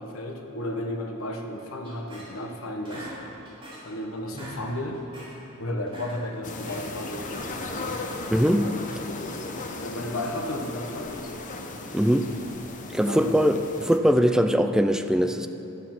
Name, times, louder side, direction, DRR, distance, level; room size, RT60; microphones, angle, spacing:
voice 1, 0.0-3.1 3.8-5.0 5.6-8.0 9.1-11.4 13.0-13.4, left 1 dB, 75° left, 3 dB, 1.1 m, -34 dB
sound 1, 1.8-2.5 2.8-3.9 4.2-4.6 4.9-5.3 5.7-6.8 7.3-7.8, equal, 25° right, 2.9 m, -42 dB
sound 2, 6.4-14.0, left 2 dB, 35° left, 0.8 m, -37 dB
voice 2, 8.3-8.8 11.9-12.3 12.9-15.5, equal, 5° right, 7 dB, 0.3 m, -21 dB
11.5 x 8.0 x 5.9 m, 3.0 s
head